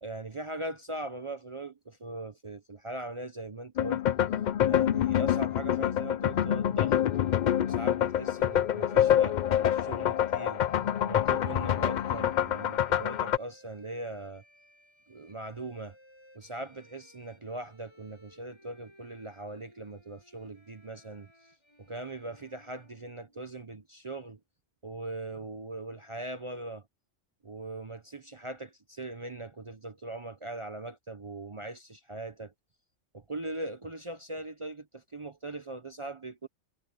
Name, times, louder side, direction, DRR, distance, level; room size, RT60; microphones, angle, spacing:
voice 1, 0.0-4.0 4.7-7.0 7.6-10.6 11.1-14.4 15.1-16.0 16.3-21.3 21.8-24.4 24.8-26.9 27.4-32.5 33.1-36.5, right 2 dB, 30° right, 0.7 m, -40 dB
sound 1, 3.8-13.4, left 10 dB, 55° left, 0.5 m, -26 dB
sound 2, 6.9-23.7, equal, 20° left, 7.3 m, -60 dB
omnidirectional pair, 1.2 m